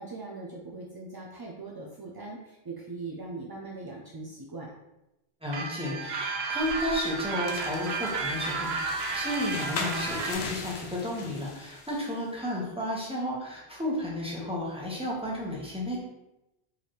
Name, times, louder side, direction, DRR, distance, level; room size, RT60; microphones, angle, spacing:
voice 1, 0.0-4.7, right 3 dB, 40° right, -2 dB, 0.3 m, -40 dB
voice 2, 5.4-16.0, left 1 dB, 5° right, -5 dB, 1.1 m, -32 dB
sound 1, 5.5-10.3, right 4 dB, 80° right, 0.9 m, -33 dB
sound 2, 6.6-12.2, left 4 dB, 85° left, 0.9 m, -39 dB
4.6 x 3.4 x 3.0 m, 0.92 s
omnidirectional pair, 1.1 m